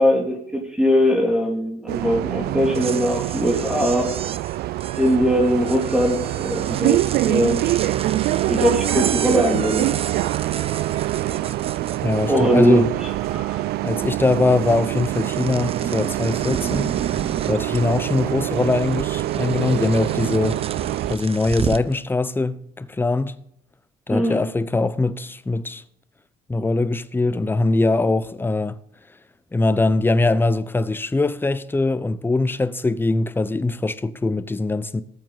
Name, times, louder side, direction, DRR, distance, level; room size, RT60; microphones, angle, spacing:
voice 1, 0.0-4.1 5.0-7.7 8.5-9.9 12.3-13.7 24.1-24.4, equal, 5° right, 2.8 m, -21 dB
Bus, 1.9-21.2, right 16 dB, 70° right, 0.4 m, -25 dB
sound 1, 2.6-12.6 12.9-13.6 13.9-21.9, right 7 dB, 35° right, 0.7 m, -33 dB
voice 2, 12.0-12.9 13.8-16.9 17.5-20.6 21.1-23.4 24.1-25.8 26.5-28.8 29.5-35.0, left 3 dB, 10° left, 0.7 m, -22 dB
18.5 x 7.5 x 4.0 m
cardioid pair, 110°, 17 cm